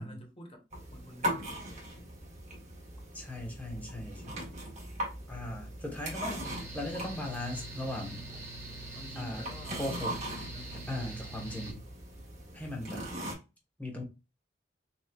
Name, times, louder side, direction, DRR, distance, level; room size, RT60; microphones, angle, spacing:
voice 1, 0.0-2.1 8.9-9.9 10.5-10.9, equal, 30° left, 1.1 m, -50 dB
sound 1, 0.7-13.3, equal, 40° right, 1.7 m, -40 dB
voice 2, 3.1-4.5 5.3-8.2 9.1-9.5 9.8-10.2 10.9-11.8 12.5-13.1 13.8-14.0, left 1 dB, 10° left, 1.3 m, -38 dB
Mechanical fan, 6.4-11.7, right 2 dB, 15° right, 1.6 m, -45 dB
6.5 x 2.6 x 2.3 m
head